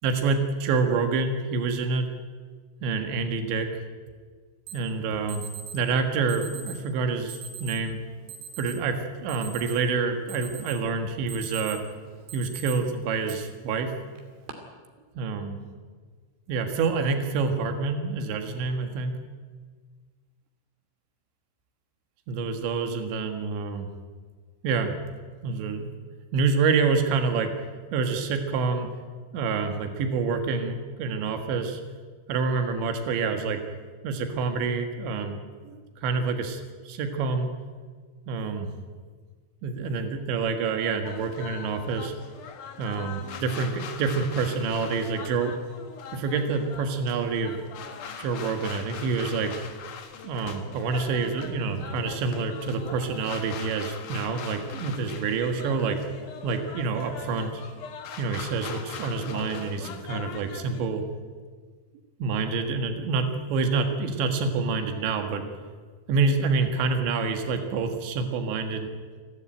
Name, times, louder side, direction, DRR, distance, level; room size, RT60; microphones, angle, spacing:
voice 1, 0.0-2.1 2.8-3.9 4.7-5.5 5.7-8.0 8.6-11.8 12.3-13.9 15.2-15.6 16.5-19.2 22.3-23.9 24.6-25.0 25.4-25.9 26.3-27.5 27.9-28.9 29.3-31.8 32.3-33.6 34.0-37.5 38.3-38.7 39.6-42.1 42.8-45.5 46.1-47.6 48.2-49.6 50.2-56.0 56.4-57.6 58.2-61.0 62.2-65.4 66.1-68.9, right 4 dB, 85° right, 6 dB, 4.1 m, -27 dB
Alarm, 4.7-4.8 5.3-5.8 6.3-6.8 7.3-7.8 8.3-8.7 9.1-9.9 10.3-10.8 11.1-11.9 12.3-12.7 13.3-13.4 14.2-14.5, right 8 dB, 65° right, 4.1 m, -40 dB
sound 1, 41.0-60.8, left 6 dB, 60° left, 2.6 m, -41 dB
28.5 x 12.5 x 9.1 m, 1.5 s
omnidirectional pair, 5.1 m